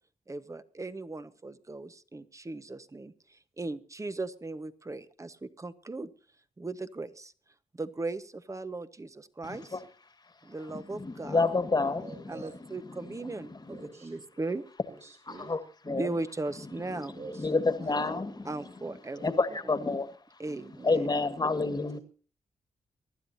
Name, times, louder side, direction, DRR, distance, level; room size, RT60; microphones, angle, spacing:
voice 1, 0.3-3.1 3.6-6.1 6.6-7.3 7.8-9.8 10.4-11.5 12.3-14.6 15.9-17.1 18.4-19.2 19.6-19.7 20.4-21.1, right 2 dB, 25° right, 12 dB, 1.2 m, -37 dB
voice 2, 9.4-9.8 10.7-12.1 13.0-13.8 15.5-15.6 15.9-16.1 17.4-20.1 20.8-22.0, left 3 dB, 30° left, 11 dB, 1.8 m, -29 dB
voice 3, 12.0-12.5 13.4-14.6 14.9-15.5 16.8-18.1 18.5-18.6 19.1-19.5 20.4-21.0, right 3 dB, 60° right, -2 dB, 7.4 m, -48 dB
24.0 x 12.0 x 2.8 m, 0.39 s
cardioid pair, 70°, 13 cm